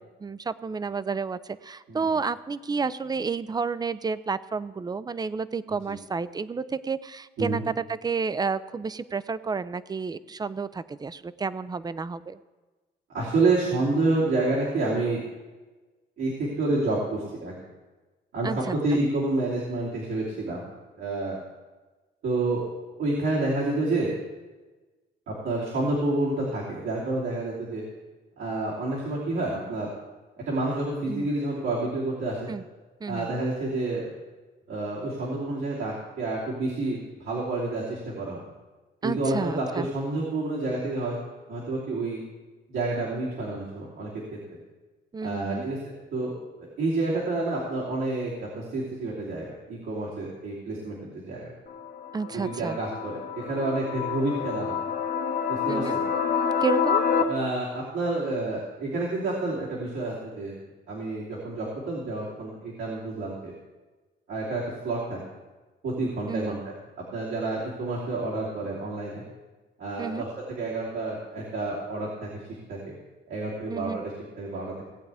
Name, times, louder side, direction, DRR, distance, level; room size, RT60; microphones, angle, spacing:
voice 1, 0.2-12.4 18.4-19.0 31.1-31.3 32.5-32.6 33.0-33.3 39.0-39.9 45.1-45.6 52.1-52.8 55.7-56.0 56.6-57.0 66.3-66.6 70.0-70.3 73.7-74.0, right 4 dB, 20° right, 15 dB, 0.5 m, -30 dB
voice 2, 13.1-15.2 16.2-17.5 18.3-20.7 21.0-21.4 22.2-22.7 22.9-24.1 25.3-27.8 28.4-29.9 30.5-32.5 33.1-34.1 34.7-38.4 39.0-41.2 41.5-42.2 42.7-44.2 45.2-45.8 46.1-51.5 52.3-54.8 55.5-56.0 57.3-60.6 60.9-63.5 64.3-65.2 65.8-66.7 67.1-69.2 69.8-72.4 72.7-72.9 73.3-74.8, right 2 dB, 85° right, -8 dB, 3.0 m, -29 dB
sound 1, 51.7-57.2, left 6 dB, 50° left, 1.2 m, -28 dB
18.0 x 8.2 x 3.5 m, 1.2 s
cardioid pair, 90°, 20 cm